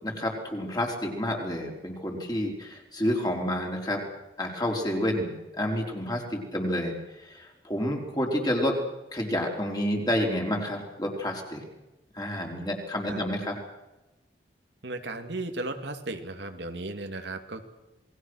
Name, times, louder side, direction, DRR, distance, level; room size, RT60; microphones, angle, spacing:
voice 1, 0.0-4.0 4.4-6.9 7.3-8.8 9.1-11.6 12.2-13.5, left 1 dB, 25° left, 1 dB, 4.3 m, -29 dB
voice 2, 14.8-17.6, right 2 dB, 80° right, 6 dB, 2.4 m, -35 dB
28.0 x 20.0 x 6.4 m, 1.0 s
head